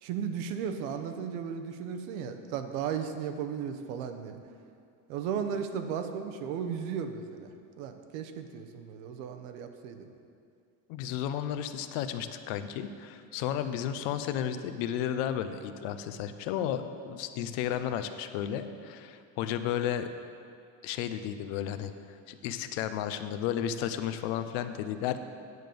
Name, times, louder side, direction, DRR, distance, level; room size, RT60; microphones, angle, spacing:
voice 1, 0.0-4.4 5.1-10.1, right 7 dB, 90° right, 7 dB, 1.0 m, -35 dB
voice 2, 10.9-20.1 20.8-25.2, left 10 dB, 80° left, 10 dB, 0.7 m, -33 dB
9.5 x 5.2 x 7.8 m, 2.4 s
cardioid pair, 160°, 40 cm